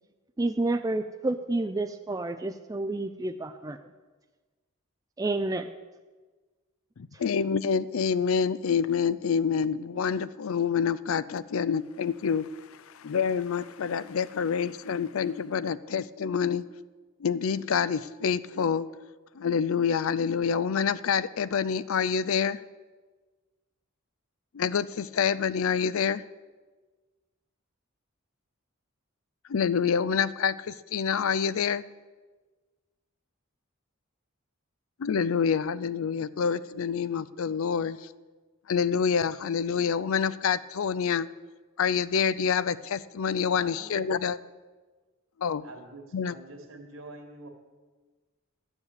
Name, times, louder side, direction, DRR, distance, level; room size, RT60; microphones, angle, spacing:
voice 1, 0.4-3.8 5.2-5.7 7.1-7.2, right 2 dB, 15° right, 7 dB, 0.3 m, -29 dB
voice 2, 7.0-12.5 12.9-16.6 17.2-18.9 19.4-22.6 24.5-26.2 29.5-31.8 35.0-38.0 38.7-41.3 41.8-44.4 45.4-45.6 46.1-46.3, left 6 dB, 75° left, 16 dB, 0.5 m, -27 dB
voice 3, 43.5-44.0 45.6-47.5, right 2 dB, 70° right, 3 dB, 2.2 m, -45 dB
12.5 x 7.2 x 8.1 m, 1.3 s
head